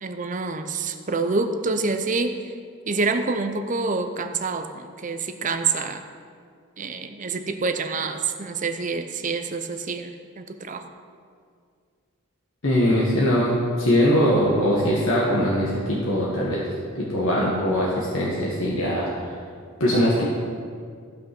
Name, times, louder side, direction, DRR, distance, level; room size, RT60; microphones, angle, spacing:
voice 1, 0.0-2.5 2.9-6.0 6.8-10.8 17.3-17.6, right 4 dB, 35° right, 7 dB, 0.6 m, -27 dB
voice 2, 12.6-16.6 16.9-19.3 19.8-20.2, equal, 65° left, -5 dB, 1.6 m, -21 dB
14.5 x 5.8 x 6.0 m, 2.1 s
head